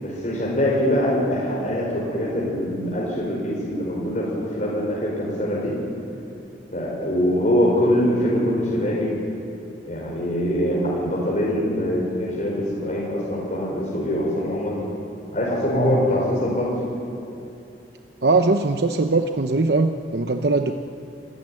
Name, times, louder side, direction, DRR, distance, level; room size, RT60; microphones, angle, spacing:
voice 1, 0.0-5.7 6.7-9.1 9.9-14.8 15.3-16.7, equal, 45° left, -5 dB, 5.2 m, -23 dB
voice 2, 15.7-16.1 18.2-20.8, right 3 dB, 65° right, 6 dB, 0.9 m, -21 dB
26.5 x 14.0 x 9.8 m, 2.8 s
head